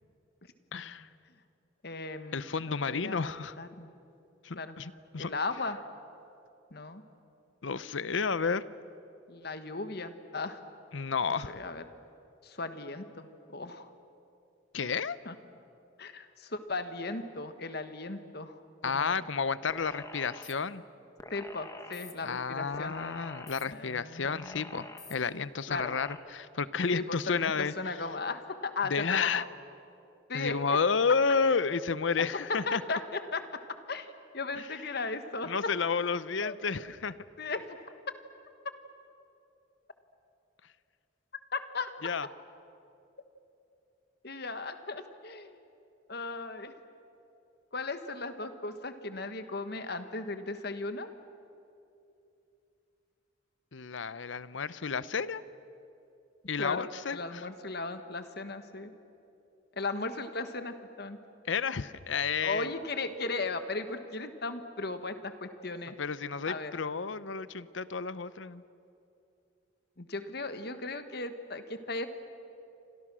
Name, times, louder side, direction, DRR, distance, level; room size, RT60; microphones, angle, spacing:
voice 1, 0.7-1.1 2.3-3.6 4.4-5.3 7.6-8.6 10.9-11.5 14.7-15.2 18.8-20.8 22.2-24.8 25.1-27.7 28.9-29.4 30.3-32.8 34.5-34.7 35.5-37.2 42.0-42.3 53.7-55.4 56.5-57.5 61.5-62.7 66.0-68.6, left 5 dB, 75° left, 16 dB, 0.8 m, -31 dB
voice 2, 1.8-3.9 4.5-4.8 5.2-5.8 6.7-7.0 9.3-10.6 11.4-11.8 12.4-13.9 15.2-15.3 16.0-19.2 21.3-22.9 23.7-24.9 25.7-25.9 26.9-29.5 30.3-30.6 32.7-33.4 33.7-35.5 36.4-36.5 37.4-37.8 41.5-41.9 44.2-45.6 46.1-46.7 47.7-51.1 56.6-58.9 59.7-61.2 62.4-65.9 66.4-66.7 70.0-72.1, left 3 dB, 55° left, 9 dB, 1.5 m, -37 dB
sound 1, 19.7-20.5 21.2-22.1 22.7-23.6 24.2-25.2 25.8-26.2, left 2 dB, 15° left, 1.6 m, -46 dB
29.5 x 26.0 x 6.3 m, 2.7 s
head